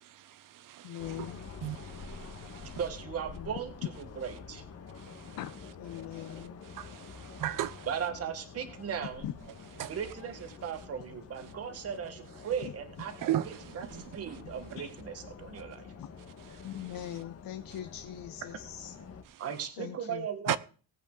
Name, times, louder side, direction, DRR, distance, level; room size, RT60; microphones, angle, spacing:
voice 1, 0.1-1.3 1.6-2.8 5.0-5.4 6.1-7.9 9.8-10.0 13.2-14.4 20.5-20.6, right 12 dB, 65° right, 0.8 m, -37 dB
voice 2, 0.8-1.4 3.3-3.5 5.4-5.5 5.8-6.6 8.1-8.3 9.2-9.3 12.6-12.7 14.8-14.9 16.0-16.1 16.6-19.0 19.8-20.3, left 11 dB, 70° left, 0.9 m, -41 dB
sound 1, 1.0-19.2, left 5 dB, 45° left, 1.5 m, -48 dB
voice 3, 2.8-3.7 4.2-4.6 7.9-9.2 9.8-13.9 14.1-15.9 19.4-20.6, right 8 dB, 45° right, 1.5 m, -37 dB
19.0 x 8.3 x 3.8 m
cardioid pair, 170°, 35 cm